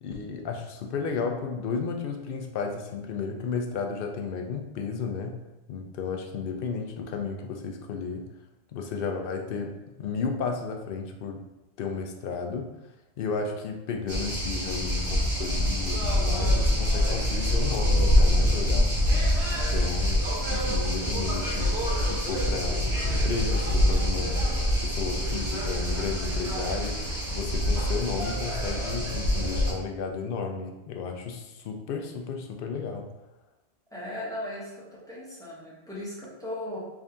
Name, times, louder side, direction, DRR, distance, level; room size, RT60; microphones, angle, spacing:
voice 1, 0.0-5.4 5.7-8.3 8.7-11.4 11.8-12.7 13.2-18.9 19.5-21.8 22.1-24.4 24.8-27.0 27.3-33.1, left 5 dB, 65° left, 4 dB, 0.7 m, -33 dB
sound 1, 14.1-29.7, equal, 90° right, 1.5 m, -25 dB
voice 2, 33.9-36.8, left 1 dB, 5° left, -7 dB, 1.0 m, -37 dB
3.7 x 2.6 x 3.4 m, 0.97 s
omnidirectional pair, 1.1 m